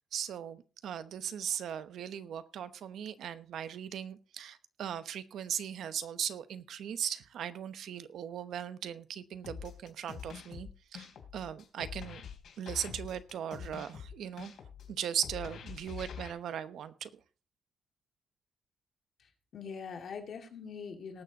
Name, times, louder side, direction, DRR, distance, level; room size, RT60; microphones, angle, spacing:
voice 1, 0.1-11.1 11.3-12.2 12.6-14.5 14.9-17.1, right 9 dB, 75° right, 12 dB, 0.9 m, -38 dB
sound 1, 9.4-16.3, left 7 dB, 70° left, 3.5 m, -45 dB
voice 2, 19.2-21.2, left 6 dB, 50° left, 5 dB, 2.2 m, -43 dB
18.5 x 7.0 x 4.0 m, 0.34 s
wide cardioid pair, 165°, 0 cm